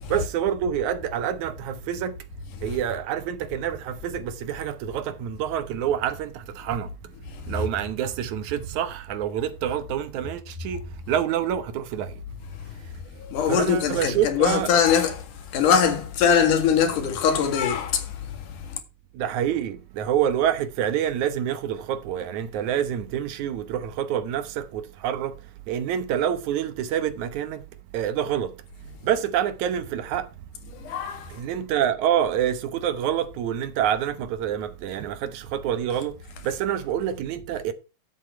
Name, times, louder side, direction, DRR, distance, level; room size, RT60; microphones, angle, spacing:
voice 1, 0.1-2.2 2.6-7.1 7.5-12.2 12.6-12.9 13.5-14.7 19.1-27.7 27.9-28.6 29.0-30.3 31.3-36.2 36.4-37.7, right 10 dB, 75° right, 2.3 m, -27 dB
voice 2, 13.2-15.3 15.5-18.8 30.8-31.4, left 7 dB, 85° left, 3.3 m, -22 dB
11.0 x 7.9 x 4.5 m
omnidirectional pair, 3.6 m